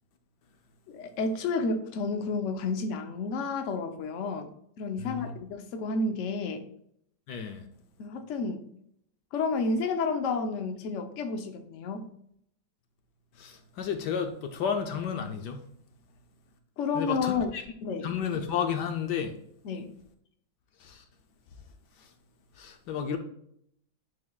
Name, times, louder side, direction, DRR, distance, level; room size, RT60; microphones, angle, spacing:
voice 1, 0.9-4.5 4.8-6.6 8.0-8.7 9.3-12.1 16.8-17.5 17.8-18.1 19.6-19.9, left 4 dB, 55° left, 0.9 m, -31 dB
voice 2, 5.0-5.3 7.3-7.6 13.3-15.7 16.9-17.6 18.0-19.4 20.8-21.0 22.0-22.1 22.6-23.2, left 7 dB, 75° left, 1.2 m, -32 dB
10.5 x 3.9 x 2.3 m
omnidirectional pair, 2.0 m